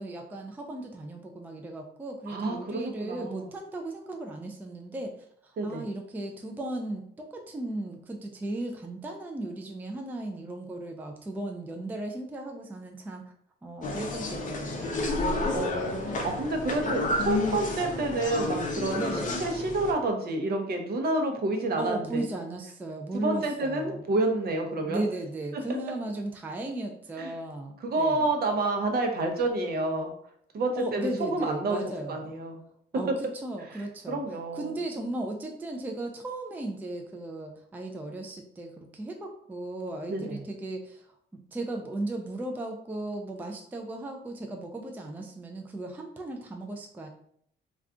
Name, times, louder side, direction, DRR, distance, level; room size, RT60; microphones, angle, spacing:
voice 1, 0.0-13.2 13.6-15.4 18.9-19.4 21.8-24.0 24.8-28.3 30.8-32.4 32.9-33.1 33.4-34.2 34.5-41.1 41.5-47.1, right 1 dB, 10° right, 3 dB, 0.3 m, -36 dB
voice 2, 2.3-3.4 5.6-5.8 15.5-22.2 23.1-25.0 27.2-27.3 27.8-30.1 30.5-31.8 32.1-32.6 33.7-33.8 34.1-34.7 40.1-40.4, right 2 dB, 50° right, 3 dB, 0.6 m, -29 dB
sound 1, 13.8-19.9, left 2 dB, 40° left, 0.6 m, -30 dB
2.3 x 2.3 x 3.6 m, 0.68 s
cardioid pair, 90°, 20 cm